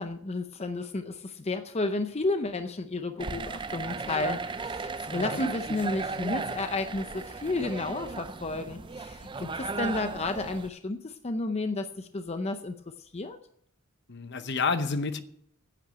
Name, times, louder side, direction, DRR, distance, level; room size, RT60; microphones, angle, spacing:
voice 1, 0.0-13.4, left 2 dB, 30° left, 0.6 m, -32 dB
sound 1, 3.2-10.7, right 4 dB, 25° right, 0.5 m, -36 dB
voice 2, 14.1-15.2, left 4 dB, 55° left, 0.9 m, -29 dB
10.5 x 8.6 x 7.8 m
head